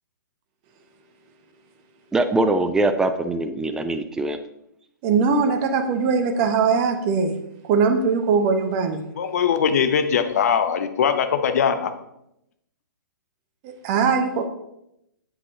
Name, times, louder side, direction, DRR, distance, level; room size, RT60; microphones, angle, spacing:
voice 1, 2.1-4.4, right 2 dB, 5° right, 8 dB, 0.4 m, -22 dB
voice 2, 5.0-7.4 7.6-9.0 13.6-14.5, right 5 dB, 30° right, 7 dB, 0.9 m, -21 dB
voice 3, 9.2-11.9, left 7 dB, 45° left, 9 dB, 0.9 m, -21 dB
8.3 x 7.8 x 3.7 m, 0.81 s
figure-of-eight pair, 120°, 11 cm